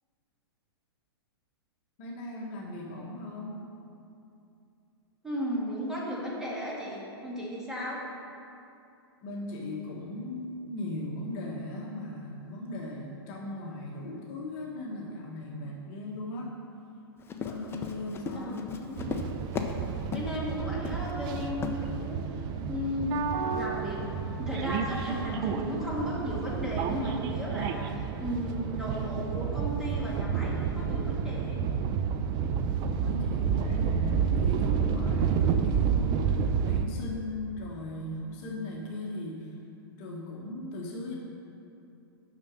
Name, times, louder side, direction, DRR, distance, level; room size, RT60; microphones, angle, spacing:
voice 1, 2.0-3.6 9.2-16.6 17.4-18.6 33.0-39.6 40.0-41.2, left 1 dB, 40° left, -2 dB, 1.4 m, -38 dB
voice 2, 5.2-8.0 18.3-18.9 20.1-23.2 23.5-31.6, equal, 5° right, -6 dB, 2.1 m, -35 dB
Run, 17.2-19.8 20.1-20.4 20.8-21.1 21.6-21.8, left 6 dB, 20° left, 0.7 m, -35 dB
sound 1, 19.0-36.9, right 6 dB, 35° right, 0.5 m, -30 dB
6.4 x 6.1 x 7.4 m, 2.7 s
hypercardioid pair, 115°, 13 cm